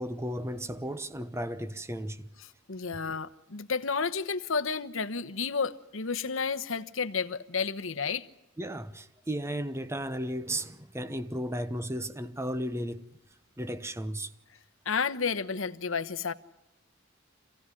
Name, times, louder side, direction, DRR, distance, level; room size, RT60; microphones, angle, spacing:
voice 1, 0.0-2.3 8.6-13.0 13.6-14.3, right 1 dB, 15° right, 0.9 m, -34 dB
voice 2, 2.7-8.2 14.8-16.3, left 5 dB, 70° left, 1.1 m, -31 dB
26.5 x 16.5 x 9.9 m
head